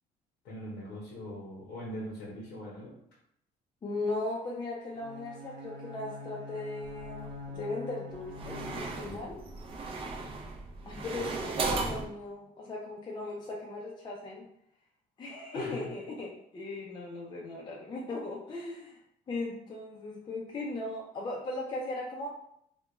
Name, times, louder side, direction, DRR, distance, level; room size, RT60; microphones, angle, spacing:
voice 1, 0.4-2.9 15.5-15.9, equal, 85° left, -4 dB, 0.8 m, -41 dB
voice 2, 3.8-9.4 10.8-14.5 15.2-19.0 19.3-22.3, left 2 dB, 25° left, -2 dB, 0.4 m, -38 dB
Bowed string instrument, 4.9-9.2, left 3 dB, 85° right, 0.7 m, -44 dB
sound 1, 6.8-7.5 8.1-12.1, right 3 dB, 35° right, 0.4 m, -36 dB
2.2 x 2.2 x 2.9 m, 0.73 s
cardioid pair, 110°, 17 cm